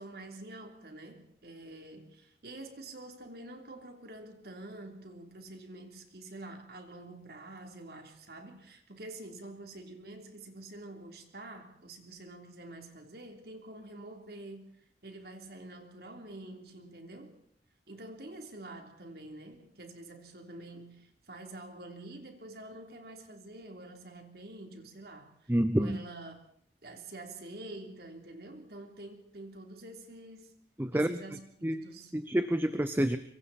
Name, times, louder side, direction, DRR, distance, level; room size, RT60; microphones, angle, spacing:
voice 1, 0.0-17.4 17.9-26.4 26.8-30.5 30.9-32.1, right 2 dB, 60° right, 4 dB, 3.4 m, -47 dB
voice 2, 25.5-26.0 30.8-31.2 31.6-31.9 32.1-33.2, right 1 dB, 10° right, 10 dB, 0.8 m, -28 dB
25.5 x 24.0 x 4.3 m, 0.63 s
head